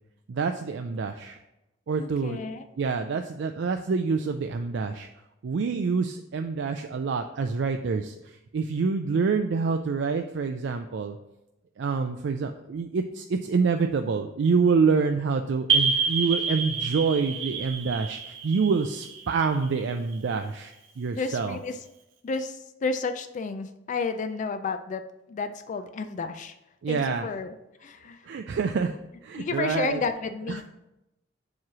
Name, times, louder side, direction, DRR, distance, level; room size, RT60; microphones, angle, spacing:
voice 1, 0.3-1.4 1.9-2.4 2.8-5.1 5.4-11.2 11.8-21.6 26.8-27.3 28.3-29.0 29.2-30.0 30.5-30.6, right 5 dB, 65° right, 6 dB, 0.4 m, -27 dB
voice 2, 2.0-2.7 21.2-21.8 22.2-25.0 25.3-26.5 26.9-28.2 29.4-30.6, left 4 dB, 40° left, 9 dB, 0.3 m, -31 dB
sound 1, 15.7-20.1, right 5 dB, 90° right, 0.8 m, -28 dB
7.3 x 3.1 x 6.0 m, 0.91 s
head